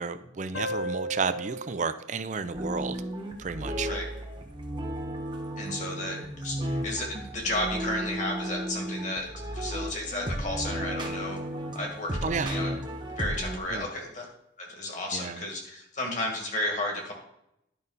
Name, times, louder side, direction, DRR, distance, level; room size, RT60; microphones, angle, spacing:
voice 1, 0.0-3.0 3.4-3.9 12.2-12.5 13.7-13.9 15.1-15.4, right 5 dB, 40° right, 12 dB, 0.5 m, -32 dB
sound 1, 0.5-3.7, equal, 70° left, 0.6 m, -37 dB
sound 2, 2.5-13.6, right 1 dB, 25° right, 1.1 m, -34 dB
voice 2, 5.6-9.3 9.5-11.4 11.7-12.7 13.2-14.3 14.6-17.1, left 1 dB, 40° left, 0 dB, 2.1 m, -33 dB
11.0 x 5.3 x 4.1 m, 0.79 s
head